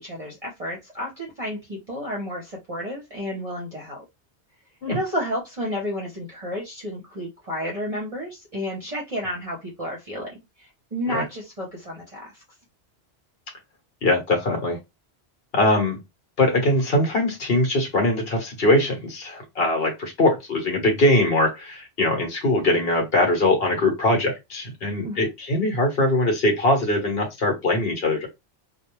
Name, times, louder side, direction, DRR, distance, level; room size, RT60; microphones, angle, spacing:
voice 1, 0.0-4.0 4.9-12.4 25.0-25.3, equal, 35° right, -3 dB, 0.8 m, -31 dB
voice 2, 14.0-14.8 15.5-16.0 16.4-28.3, left 1 dB, 65° left, 2 dB, 1.3 m, -21 dB
2.4 x 2.1 x 3.0 m, 0.21 s
omnidirectional pair, 1.1 m